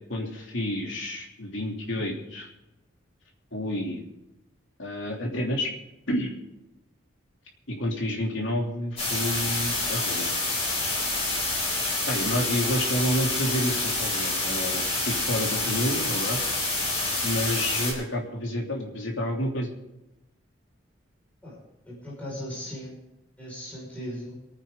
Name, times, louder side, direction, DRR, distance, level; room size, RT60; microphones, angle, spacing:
voice 1, 0.1-2.5 3.5-4.0 4.8-5.7 6.1-6.3 7.7-10.3 12.1-16.4 17.2-19.7, left 1 dB, 70° left, -1 dB, 3.0 m, -29 dB
sound 1, 9.0-17.9, left 2 dB, 30° left, 5.0 m, -27 dB
voice 2, 21.9-23.0 23.4-24.4, equal, 5° left, -6 dB, 5.5 m, -37 dB
27.0 x 9.2 x 3.9 m, 0.93 s
head